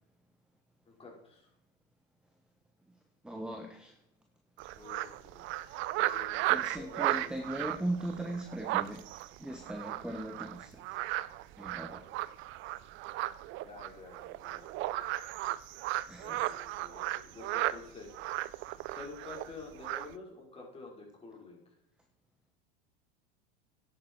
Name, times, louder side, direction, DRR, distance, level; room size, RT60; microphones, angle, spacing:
voice 1, 0.9-1.5 4.8-7.3 13.6-14.9 16.2-18.1 18.9-21.6, left 3 dB, 20° left, -1 dB, 5.1 m, -49 dB
voice 2, 3.2-3.9 6.5-9.1 9.4-11.0 11.6-12.1 16.1-16.4, right 1 dB, 5° right, 4 dB, 1.3 m, -38 dB
sound 1, 4.6-17.8 18.1-19.5 19.8-20.1, right 16 dB, 45° right, 0.6 m, -35 dB
10.5 x 9.1 x 4.7 m, 0.83 s
hypercardioid pair, 100°, 29 cm